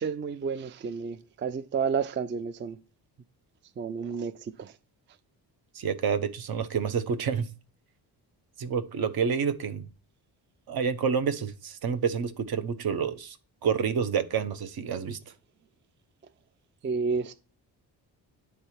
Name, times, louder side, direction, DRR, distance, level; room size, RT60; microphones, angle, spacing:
voice 1, 0.0-2.8 3.8-4.7 16.8-17.3, right 5 dB, 30° right, 0.4 m, -31 dB
voice 2, 5.7-7.5 8.6-9.9 10.7-13.4 13.6-15.2, right 6 dB, 65° right, 1.0 m, -28 dB
9.8 x 3.4 x 4.3 m
cardioid pair, 105°, 40 cm